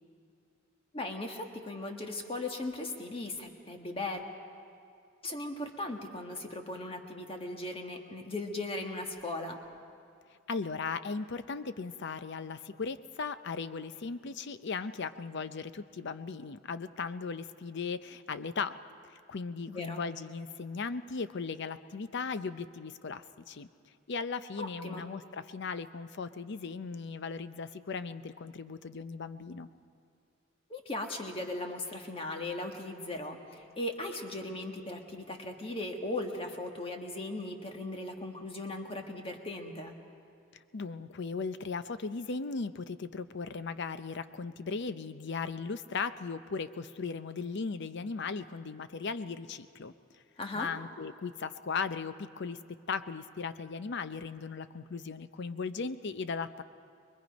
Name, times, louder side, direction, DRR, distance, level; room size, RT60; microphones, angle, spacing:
voice 1, 0.9-4.2 5.2-9.6 19.7-20.0 24.6-25.1 30.7-39.9 50.4-50.7, left 2 dB, 30° left, 3 dB, 1.6 m, -38 dB
voice 2, 10.5-18.8 19.3-23.7 24.1-29.7 40.7-49.9 50.5-52.6 52.9-56.6, left 4 dB, 60° left, 12 dB, 0.6 m, -37 dB
24.0 x 21.5 x 5.2 m, 2.3 s
head